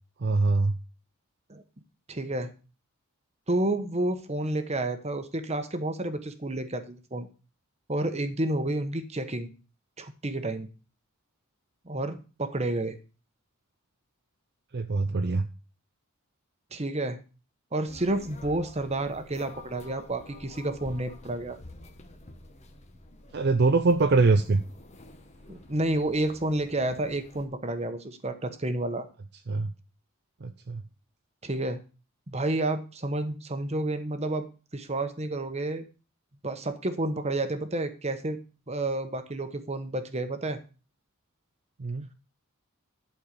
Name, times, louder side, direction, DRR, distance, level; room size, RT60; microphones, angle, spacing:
voice 1, 0.2-0.7 14.7-15.5 23.3-24.6 29.5-29.7 30.4-30.8 41.8-42.1, right 3 dB, 50° right, 7 dB, 0.6 m, -23 dB
voice 2, 2.1-2.5 3.5-7.3 7.9-9.5 10.0-10.7 11.9-13.0 16.7-17.2 17.7-21.6 25.5-29.1 31.4-31.8 32.3-34.5 34.7-35.8 36.4-38.4 38.7-40.6, right 2 dB, 30° right, 9 dB, 1.1 m, -30 dB
sound 1, 17.9-27.4, left 2 dB, 30° left, 1.2 m, -49 dB
11.5 x 4.4 x 6.8 m, 0.34 s
head